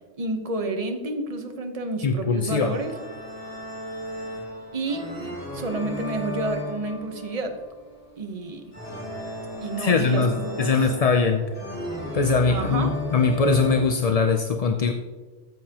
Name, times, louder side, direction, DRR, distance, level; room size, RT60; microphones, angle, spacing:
voice 1, 0.2-2.9 4.7-7.6 8.2-8.6 9.6-10.7 12.5-12.9, right 2 dB, 35° right, 5 dB, 1.0 m, -30 dB
voice 2, 2.0-2.7 9.8-11.4 12.1-14.9, left 4 dB, 50° left, 6 dB, 0.5 m, -21 dB
sound 1, 2.5-13.8, left 1 dB, 15° left, 2.2 m, -35 dB
13.5 x 7.4 x 2.9 m, 1.3 s
omnidirectional pair, 1.2 m